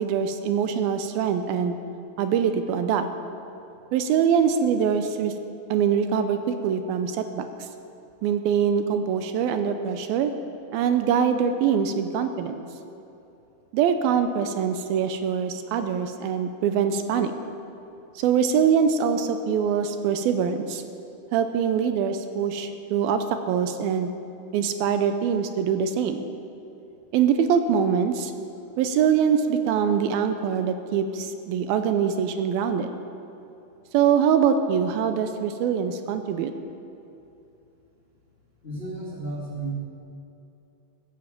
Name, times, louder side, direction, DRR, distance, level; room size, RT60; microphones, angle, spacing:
voice 1, 0.0-1.8 2.2-3.1 3.9-5.3 5.7-7.4 8.2-10.3 10.7-12.6 13.7-17.3 18.2-20.8 21.3-24.1 24.5-26.3 27.1-28.3 28.8-32.9 33.9-36.5, right 7 dB, 80° right, 8 dB, 2.5 m, -23 dB
voice 2, 38.6-39.7, right 2 dB, 25° left, -5 dB, 1.4 m, -33 dB
16.5 x 10.5 x 7.4 m, 2.8 s
omnidirectional pair, 4.4 m